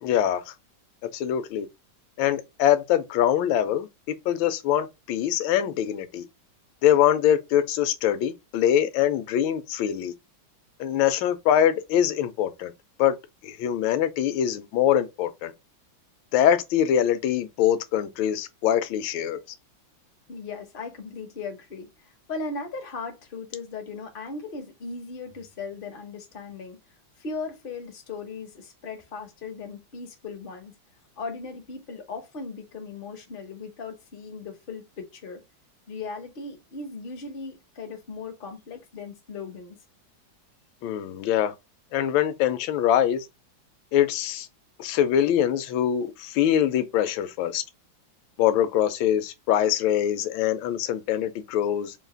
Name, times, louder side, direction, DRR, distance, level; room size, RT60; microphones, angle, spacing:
voice 1, 0.0-0.5 1.1-1.7 2.2-6.3 6.8-10.1 10.8-12.7 13.0-13.1 13.4-15.5 16.3-19.4 40.8-41.5 41.9-43.3 43.9-44.5 44.8-47.6 48.4-51.9, left 10 dB, 80° left, 1.3 m, -23 dB
voice 2, 20.3-26.8 27.2-30.7 31.2-35.4 35.9-39.8, left 4 dB, 50° left, 0.6 m, -37 dB
3.8 x 2.4 x 3.7 m
omnidirectional pair, 2.2 m